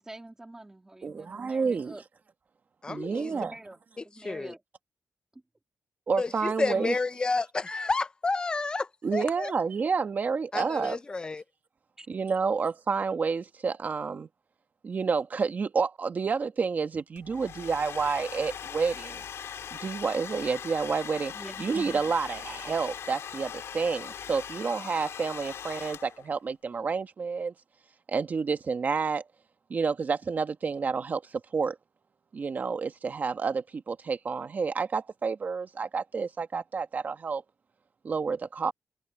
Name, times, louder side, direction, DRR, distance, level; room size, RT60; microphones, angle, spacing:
voice 1, 0.0-2.0 3.3-4.6 5.3-5.4 12.0-12.1 21.3-21.8, right 2 dB, 10° right, 3.4 m, -46 dB
voice 2, 1.0-1.9 2.9-3.5 6.1-6.9 9.0-11.0 12.1-14.3 14.8-19.2 19.7-21.3 21.6-27.5 28.1-29.2 29.7-31.8 32.3-37.4 38.0-38.7, right 5 dB, 40° right, 1.6 m, -29 dB
voice 3, 2.8-3.3 4.2-4.5 6.2-9.5 10.5-11.4, left 3 dB, 20° left, 0.6 m, -30 dB
Domestic sounds home sounds, 17.2-26.4, left 8 dB, 85° left, 4.9 m, -40 dB
wide cardioid pair, 160°, 4 cm